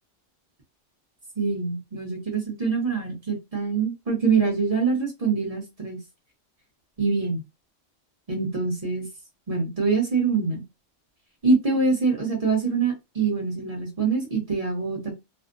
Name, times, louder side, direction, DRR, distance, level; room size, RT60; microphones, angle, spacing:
voice 1, 1.4-6.0 7.0-7.4 8.3-9.1 9.5-10.6 11.4-15.1, right 4 dB, 35° right, 0.9 m, -24 dB
2.5 x 2.1 x 2.5 m
omnidirectional pair, 1.3 m